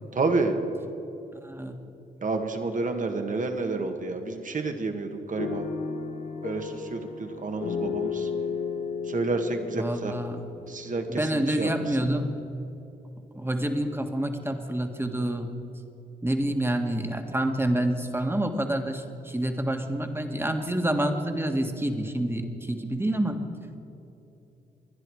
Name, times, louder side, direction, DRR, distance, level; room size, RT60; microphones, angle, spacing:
voice 1, 0.2-0.6 2.2-5.7 6.4-8.3 9.1-10.1 10.7-11.7, right 3 dB, 50° right, 6 dB, 1.8 m, -29 dB
voice 2, 1.4-1.8 9.7-10.4 11.1-12.6 13.3-15.5 16.2-23.4, right 1 dB, 15° right, 5 dB, 1.8 m, -28 dB
sound 1, 5.4-11.4, left 6 dB, 75° left, 2.1 m, -34 dB
24.0 x 10.5 x 4.8 m, 3.0 s
supercardioid pair, 55°, 18 cm